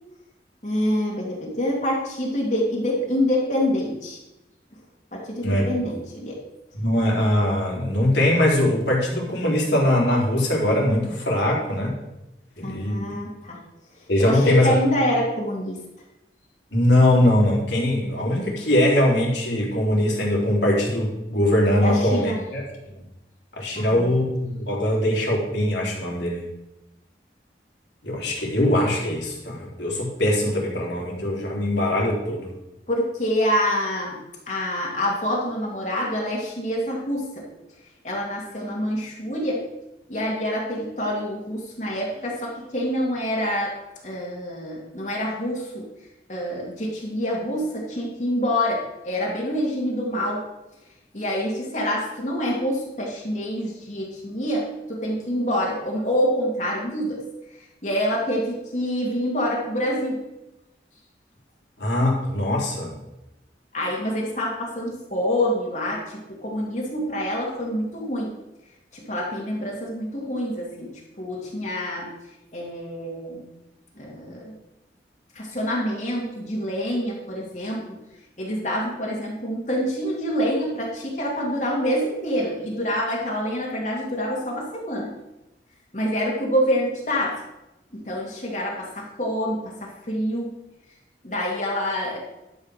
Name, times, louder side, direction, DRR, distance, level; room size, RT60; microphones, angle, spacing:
voice 1, 0.6-4.2 5.1-6.4 12.6-13.6 14.2-15.8 21.8-22.3 23.7-24.1 32.9-34.2 34.5-37.5 38.0-39.6 40.1-43.8 44.0-45.9 46.3-50.4 51.1-57.2 57.8-60.2 63.7-68.3 68.9-72.1 72.5-73.5 73.9-74.5 75.3-78.0 78.4-85.1 85.9-87.4 87.9-90.5 91.2-92.2, equal, 40° left, -3 dB, 2.4 m, -26 dB
voice 2, 6.7-11.9 12.6-13.1 14.1-14.7 16.7-22.6 22.9-23.0 23.6-26.4 28.0-32.5 61.8-62.9, left 1 dB, 85° left, -3 dB, 3.6 m, -21 dB
11.5 x 5.6 x 6.5 m, 0.95 s
head